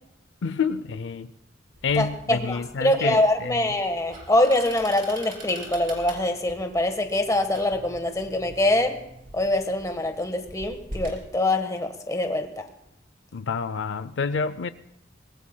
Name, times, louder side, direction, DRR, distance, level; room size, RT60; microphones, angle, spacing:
voice 1, 0.4-1.3 1.8-3.8 13.3-14.7, left 5 dB, 80° left, 14 dB, 0.5 m, -28 dB
sound 1, 1.7-11.2, right 1 dB, 50° right, 3.8 m, -44 dB
voice 2, 2.0-9.0 9.3-12.7, left 1 dB, 20° left, 6 dB, 1.3 m, -24 dB
24.5 x 20.0 x 2.2 m, 0.80 s
head